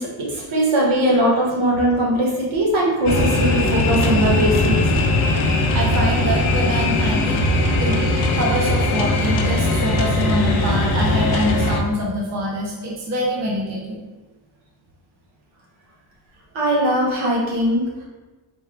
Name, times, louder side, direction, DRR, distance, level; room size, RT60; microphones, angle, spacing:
voice 1, 0.0-4.8 16.5-17.9, right 1 dB, 70° right, -4 dB, 1.5 m, -20 dB
sound 1, 3.0-11.8, left 2 dB, 75° left, 0.7 m, -19 dB
voice 2, 5.7-8.0 8.3-14.0, equal, 35° right, -3 dB, 0.6 m, -25 dB
4.4 x 3.7 x 3.3 m, 1.2 s
wide cardioid pair, 180°, 49 cm